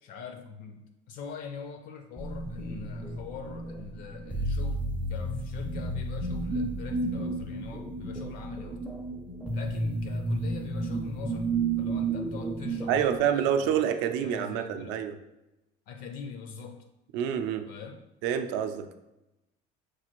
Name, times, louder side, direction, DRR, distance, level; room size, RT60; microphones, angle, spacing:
voice 1, 0.0-8.9 9.5-13.9 14.2-15.0 15.9-16.9 17.7-18.0, left 6 dB, 55° left, 6 dB, 0.4 m, -43 dB
sound 1, 2.2-13.2, right 2 dB, 10° right, 0.4 m, -32 dB
voice 2, 12.9-15.2 17.1-17.7 18.2-18.9, right 9 dB, 75° right, 7 dB, 0.4 m, -27 dB
6.0 x 2.5 x 3.0 m, 0.96 s
cardioid pair, 155°, 18 cm